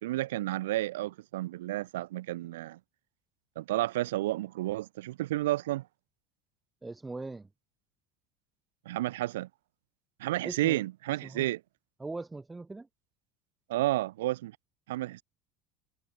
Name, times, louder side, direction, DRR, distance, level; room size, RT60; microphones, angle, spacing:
voice 1, 0.0-2.8 3.6-5.9 8.9-9.5 10.2-11.6 13.7-14.5 14.9-15.2, right 16 dB, 70° right, 0.5 m, -31 dB
voice 2, 6.8-7.5 10.4-10.8 11.2-11.5 12.0-12.9, right 3 dB, 15° right, 1.8 m, -40 dB
figure-of-eight pair, 65°, 0 cm